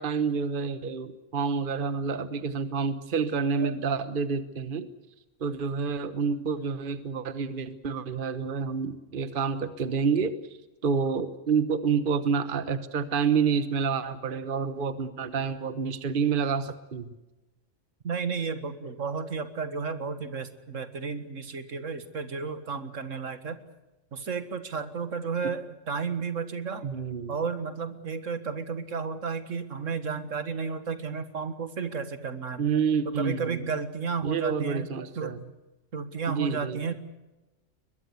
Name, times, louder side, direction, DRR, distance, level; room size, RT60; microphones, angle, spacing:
voice 1, 0.0-4.9 5.4-10.4 10.8-17.1 26.8-27.3 32.6-33.6 34.2-35.4 36.3-36.8, right 5 dB, 45° right, 12 dB, 1.3 m, -28 dB
voice 2, 18.0-23.6 24.1-26.9 27.3-32.7 33.2-34.9 35.2-35.4 35.9-36.9, right 5 dB, 70° right, 11 dB, 2.0 m, -32 dB
22.5 x 21.5 x 8.2 m, 1.0 s
omnidirectional pair, 1.3 m